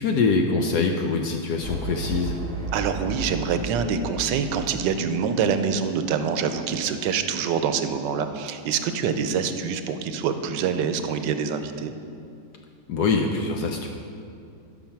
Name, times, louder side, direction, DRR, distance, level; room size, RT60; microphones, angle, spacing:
voice 1, 0.0-2.4 12.9-13.9, left 4 dB, 70° left, 3 dB, 1.1 m, -24 dB
sound 1, 1.6-5.2, right 3 dB, 25° right, 1.1 m, -33 dB
voice 2, 2.7-11.9, right 6 dB, 80° right, 9 dB, 1.3 m, -25 dB
12.5 x 5.9 x 5.8 m, 2.5 s
omnidirectional pair, 1.9 m